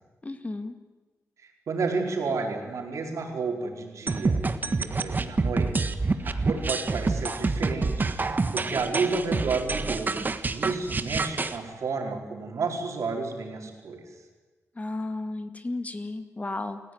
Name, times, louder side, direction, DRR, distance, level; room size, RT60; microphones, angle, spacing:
voice 1, 0.2-0.7 14.8-16.8, left 2 dB, 25° left, 8 dB, 2.0 m, -33 dB
voice 2, 1.4-5.9 6.2-8.1 8.5-14.0, right 4 dB, 75° right, 2 dB, 4.5 m, -31 dB
sound 1, 4.1-11.6, right 3 dB, 35° right, 1.5 m, -27 dB
28.0 x 15.5 x 9.4 m, 1.3 s
cardioid pair, 85°, 5 cm